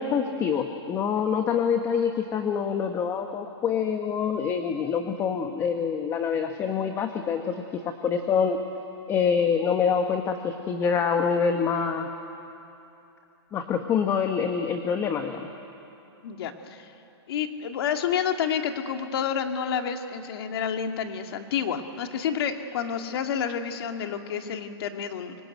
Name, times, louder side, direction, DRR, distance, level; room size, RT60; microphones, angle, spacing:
voice 1, 0.0-8.6 9.1-12.1 13.5-15.5, left 6 dB, 20° left, 6 dB, 1.1 m, -26 dB
voice 2, 16.2-16.9 17.3-25.4, left 8 dB, 60° left, 5 dB, 2.1 m, -29 dB
25.5 x 23.5 x 9.4 m, 2.8 s
hypercardioid pair, 160°, 15 cm